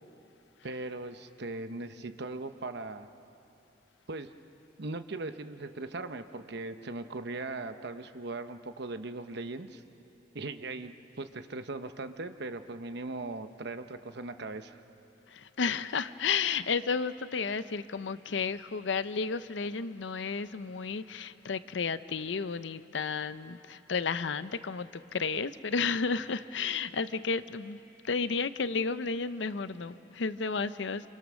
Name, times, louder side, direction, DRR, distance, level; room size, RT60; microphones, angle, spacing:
voice 1, 0.6-3.1 4.1-4.3 4.8-9.8 10.3-14.8, right 2 dB, 60° right, 9 dB, 1.0 m, -39 dB
voice 2, 15.3-31.1, left 5 dB, 70° left, 14 dB, 0.6 m, -32 dB
27.5 x 27.5 x 6.3 m, 2.9 s
head